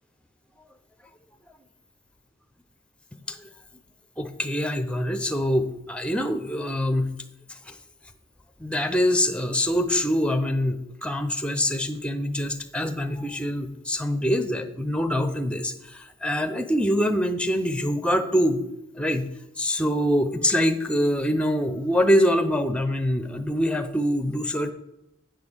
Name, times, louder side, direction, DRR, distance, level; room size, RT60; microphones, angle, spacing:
voice 1, 4.2-7.1 7.5-7.8 8.6-18.6 18.9-19.3 19.6-24.7, equal, 5° left, 8 dB, 0.7 m, -24 dB
9.0 x 5.5 x 8.0 m, 0.88 s
head